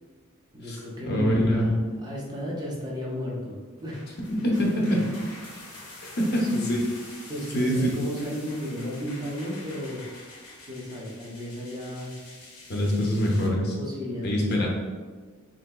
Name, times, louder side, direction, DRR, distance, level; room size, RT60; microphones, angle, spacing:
voice 1, 0.5-4.0 4.3-5.0 6.4-6.8 7.3-10.0 10.6-12.2 13.7-14.7, equal, 20° right, -4 dB, 0.5 m, -34 dB
voice 2, 1.1-1.7 4.3-5.0 6.2-6.8 7.5-7.9 12.7-13.8 14.2-14.7, equal, 50° left, -2 dB, 0.6 m, -24 dB
sound 1, 3.8-13.5, left 2 dB, 80° left, 0.8 m, -46 dB
3.9 x 2.7 x 2.2 m, 1.5 s
head